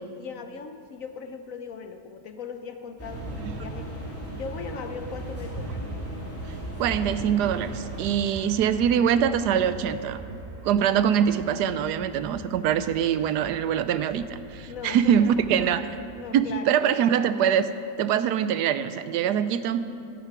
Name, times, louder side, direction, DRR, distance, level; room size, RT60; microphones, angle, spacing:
voice 1, 0.2-5.8 8.3-8.9 10.7-10.9 14.7-15.9 16.1-17.1, left 5 dB, 60° left, 7 dB, 1.0 m, -39 dB
sound 1, 3.0-8.2, right 1 dB, 10° left, 2.8 m, -35 dB
voice 2, 6.8-10.3 10.6-15.9 16.3-17.7 18.0-19.8, right 9 dB, 75° right, 12 dB, 1.1 m, -23 dB
sound 2, 7.9-16.7, right 2 dB, 50° right, 1.6 m, -44 dB
14.5 x 10.5 x 6.0 m, 2.5 s
omnidirectional pair, 1.8 m